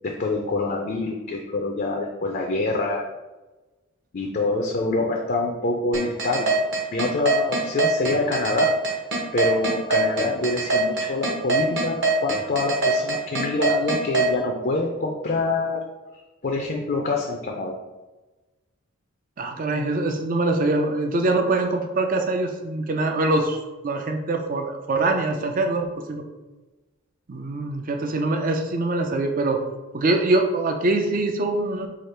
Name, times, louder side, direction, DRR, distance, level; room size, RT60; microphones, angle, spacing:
voice 1, 0.0-3.1 4.1-6.5 6.9-8.7 9.3-15.8 16.4-17.7, left 3 dB, 45° left, 1 dB, 0.5 m, -25 dB
sound 1, 5.9-14.3, right 3 dB, 55° right, 1.2 m, -22 dB
voice 2, 19.4-23.6 23.8-26.2 27.3-29.6 29.9-31.9, right 2 dB, 40° right, 4 dB, 0.4 m, -23 dB
4.9 x 2.4 x 4.4 m, 1.1 s
head